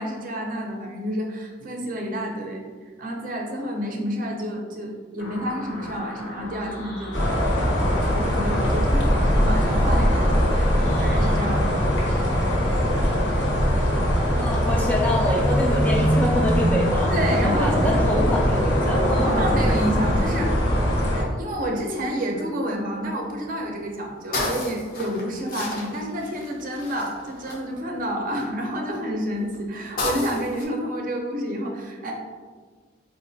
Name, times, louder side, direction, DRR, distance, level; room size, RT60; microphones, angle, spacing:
voice 1, 0.0-2.6 3.0-10.7 11.0-12.8 17.1-18.2 19.2-20.5 21.0-32.1, equal, 50° right, 1 dB, 0.5 m, -29 dB
sound 1, 5.2-11.7, left 1 dB, 90° left, 0.7 m, -37 dB
sound 2, 7.1-21.2, equal, 70° left, 0.9 m, -21 dB
voice 2, 14.3-17.2 17.4-19.4, left 1 dB, 10° left, -2 dB, 0.3 m, -26 dB
sound 3, 22.5-22.6 23.0-23.1 23.3-28.5 29.1-30.7, left 2 dB, 50° left, 0.6 m, -32 dB
3.9 x 2.5 x 2.6 m, 1.5 s
head